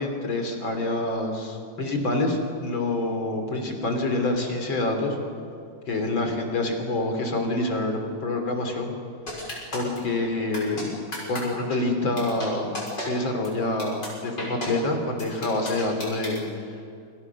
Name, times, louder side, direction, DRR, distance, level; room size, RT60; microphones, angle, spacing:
voice 1, 0.0-5.2 5.9-8.9 9.7-10.9 11.3-12.7 13.0-16.7, left 2 dB, 90° left, 4 dB, 4.1 m, -27 dB
sound 1, 9.3-10.0 10.5-10.8 11.1-11.4 11.7-11.8 12.2-12.5 12.7-13.1 13.4-13.5 13.8-14.1 14.4-14.7 15.2-16.4, left 1 dB, 65° left, 7.5 m, -33 dB
28.5 x 27.0 x 6.2 m, 2.4 s
omnidirectional pair, 2.1 m